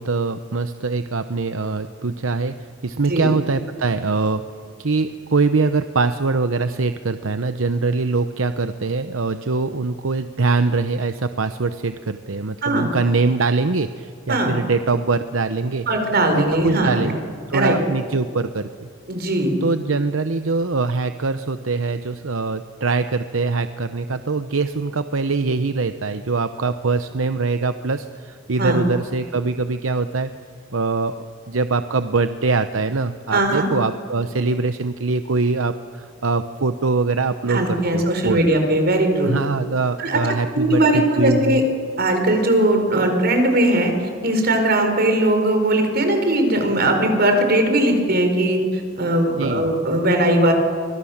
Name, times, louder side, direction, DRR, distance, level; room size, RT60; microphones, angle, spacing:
voice 1, 0.0-4.4 4.8-15.9 16.3-17.2 17.5-18.9 19.6-30.3 30.7-38.4 39.2-41.6 49.4-49.7, right 3 dB, 75° right, 10 dB, 0.8 m, -23 dB
voice 2, 15.9-17.0 17.5-17.7 19.1-19.5 28.6-28.8 33.3-33.7 37.5-39.3 40.0-40.2 40.5-41.6 42.0-50.5, right 1 dB, 50° right, 5 dB, 4.9 m, -19 dB
29.0 x 24.5 x 7.3 m, 2.3 s
head